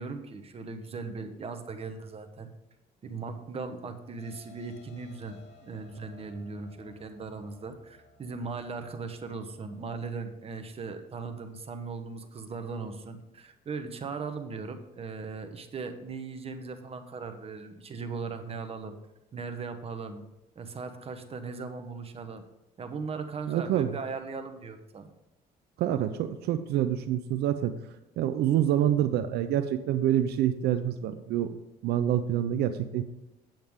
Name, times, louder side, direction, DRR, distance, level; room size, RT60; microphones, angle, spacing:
voice 1, 0.0-2.5 3.0-19.0 19.3-20.3 20.5-22.4 22.8-25.1, right 4 dB, 35° right, 7 dB, 1.1 m, -38 dB
sound 1, 4.2-9.8, left 2 dB, 40° left, 2.0 m, -58 dB
voice 2, 23.5-23.9 25.8-27.7 28.2-33.0, right 11 dB, 75° right, 10 dB, 0.6 m, -27 dB
8.9 x 7.8 x 3.6 m, 0.95 s
cardioid pair, 110°, 17 cm